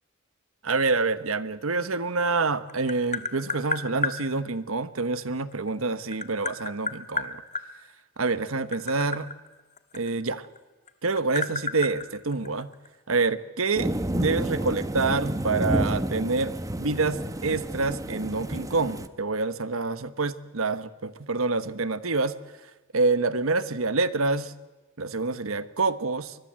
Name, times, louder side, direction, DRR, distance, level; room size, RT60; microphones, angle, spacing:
voice 1, 0.6-7.4 8.2-9.3 9.9-10.4 11.0-12.7 13.1-22.3 22.6-24.5 25.0-26.4, right 3 dB, 80° right, 13 dB, 1.2 m, -27 dB
Tap, 2.3-4.2 5.5-7.7 8.4-10.6 10.9-12.9, left 4 dB, 35° left, 1.5 m, -31 dB
sound 1, 13.8-19.1, right 1 dB, 15° right, 1.0 m, -30 dB
25.0 x 21.0 x 7.6 m, 1.2 s
head